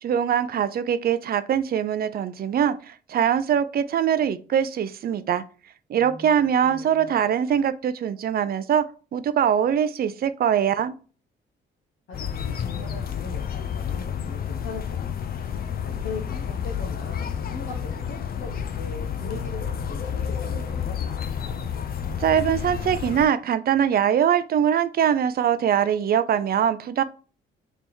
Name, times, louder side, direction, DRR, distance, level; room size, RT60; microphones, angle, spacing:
voice 1, 0.0-5.4 5.9-8.9 9.1-11.0 22.2-27.0, right 9 dB, 50° right, 0.5 m, -22 dB
voice 2, 6.0-7.2 12.1-15.3 15.8-21.6, left 3 dB, 65° left, 1.0 m, -40 dB
sound 1, 12.1-23.3, left 8 dB, 50° left, 0.6 m, -30 dB
3.5 x 3.0 x 4.2 m
cardioid pair, 90°, 20 cm